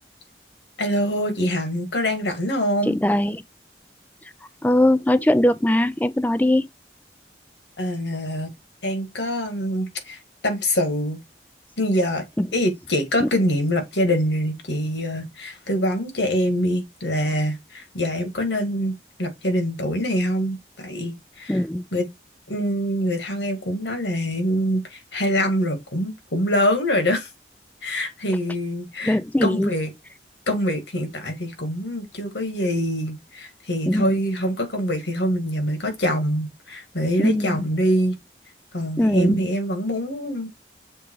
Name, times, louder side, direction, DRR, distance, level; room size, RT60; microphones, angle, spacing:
voice 1, 0.8-3.0 7.8-8.5 8.8-11.2 11.8-12.2 12.5-18.9 19.2-21.6 21.9-22.1 22.5-27.3 27.8-29.9 30.5-38.2 38.7-40.5, equal, 90° left, 2.1 m, -24 dB
voice 2, 2.9-3.4 4.6-6.7 12.4-12.5 13.2-13.3 21.5-21.8 29.1-29.7 33.9-34.1 37.2-37.7 39.0-39.4, left 1 dB, 10° left, 0.4 m, -20 dB
6.9 x 3.7 x 4.7 m
head